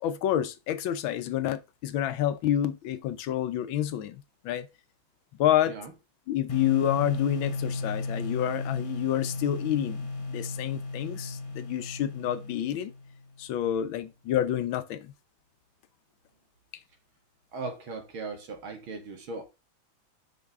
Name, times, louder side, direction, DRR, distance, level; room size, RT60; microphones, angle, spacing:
voice 1, 0.0-4.7 5.4-5.8 6.3-12.9 13.4-15.1, left 11 dB, 75° left, 1.5 m, -28 dB
sound 1, 6.5-13.3, left 3 dB, 50° left, 0.3 m, -35 dB
voice 2, 17.5-19.4, right 3 dB, 80° right, 2.7 m, -38 dB
6.5 x 5.6 x 3.5 m
omnidirectional pair, 2.2 m